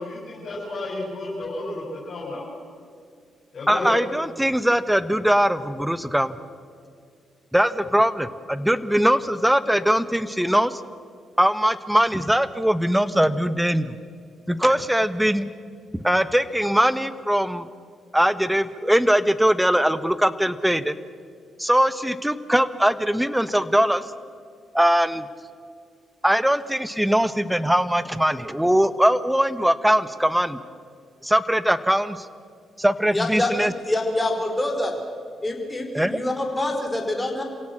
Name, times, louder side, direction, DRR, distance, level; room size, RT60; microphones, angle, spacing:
voice 1, 0.0-2.5 3.5-4.0, left 2 dB, 60° left, -5 dB, 7.6 m, -32 dB
voice 2, 3.7-6.4 7.5-10.8 11.4-14.0 14.5-15.5 15.9-17.7 18.1-21.0 21.6-24.0 24.7-25.2 26.2-30.6 31.2-32.2 32.8-33.7 35.9-36.2, equal, 5° right, 14 dB, 1.3 m, -21 dB
voice 3, 33.1-33.5 33.8-34.9 35.4-37.4, left 1 dB, 15° left, 3 dB, 4.8 m, -25 dB
27.0 x 17.0 x 6.4 m, 2.3 s
hypercardioid pair, 45°, 0 cm